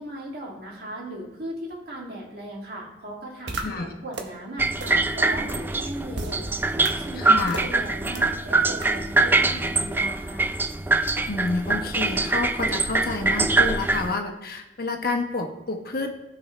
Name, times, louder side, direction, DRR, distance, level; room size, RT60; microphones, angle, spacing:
voice 1, 0.0-6.5 6.8-10.5, right 1 dB, 65° right, -3 dB, 2.6 m, -37 dB
sound 1, 3.5-3.6 4.1-4.2 4.8-4.9 5.5-5.6 6.1-6.3 6.8-6.9 7.5-7.7 8.1-8.2 8.8-8.9, right 3 dB, 85° right, 1.2 m, -31 dB
voice 2, 3.6-3.9 7.1-7.6 11.0-16.1, left 3 dB, 60° left, 3 dB, 1.2 m, -29 dB
sound 2, 4.6-14.1, right 3 dB, 10° right, 0.4 m, -23 dB
15.5 x 5.5 x 3.3 m, 1.0 s
head